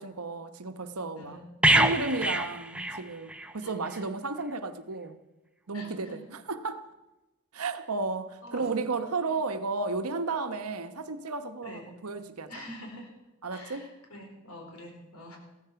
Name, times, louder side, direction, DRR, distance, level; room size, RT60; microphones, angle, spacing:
voice 1, 0.0-1.4 1.7-5.2 5.7-6.9 7.5-12.6 13.4-13.9, right 3 dB, 85° right, 1.1 m, -33 dB
sound 1, 1.6-3.5 3.8-4.0, right 1 dB, 5° right, 0.8 m, -25 dB
voice 2, 3.6-4.0 5.7-6.2 8.4-8.7 11.6-11.8 12.5-13.1 13.5-15.4, left 1 dB, 85° left, 4.5 m, -46 dB
15.5 x 14.5 x 5.9 m
head